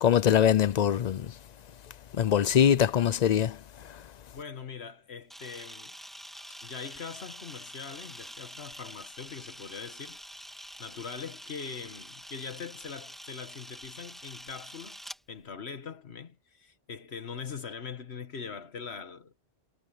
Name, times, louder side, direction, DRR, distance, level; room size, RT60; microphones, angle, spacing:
voice 1, 0.0-1.3 2.1-3.6 3.8-4.0, left 9 dB, 55° left, 0.5 m, -23 dB
voice 2, 4.3-5.9 6.5-10.2 10.8-15.0 15.3-19.3, left 6 dB, 80° left, 1.7 m, -42 dB
Camera, 5.3-15.2, equal, ahead, 2.4 m, -46 dB
omnidirectional pair, 1.1 m